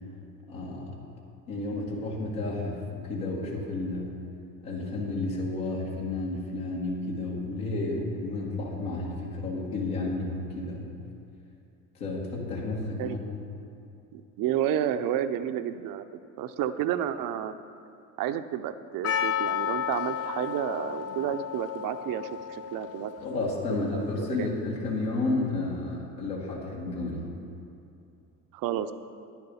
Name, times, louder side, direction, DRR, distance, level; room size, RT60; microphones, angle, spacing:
voice 1, 0.5-1.0 1.5-4.2 4.6-10.9 11.9-13.2 23.2-27.3, left 2 dB, 80° left, -4 dB, 1.9 m, -31 dB
voice 2, 14.1-16.1 16.4-17.6 18.2-23.1 23.9-24.5 28.5-28.9, right 10 dB, 50° right, 11 dB, 0.6 m, -31 dB
Percussion, 19.0-24.0, left 9 dB, 35° left, 0.4 m, -33 dB
10.0 x 7.2 x 5.5 m, 2.5 s
hypercardioid pair, 70°, 44 cm